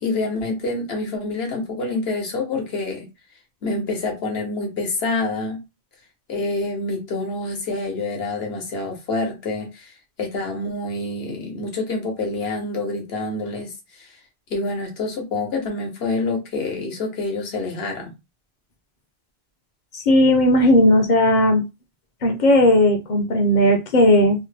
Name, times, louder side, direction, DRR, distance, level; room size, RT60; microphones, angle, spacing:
voice 1, 0.0-3.1 3.6-5.6 6.3-9.9 10.2-13.7 14.0-14.1 14.5-18.1, left 3 dB, 70° left, 1.2 m, -27 dB
voice 2, 19.9-21.6 22.2-24.5, left 1 dB, 50° left, 0.7 m, -16 dB
3.0 x 2.1 x 3.2 m
omnidirectional pair, 1.1 m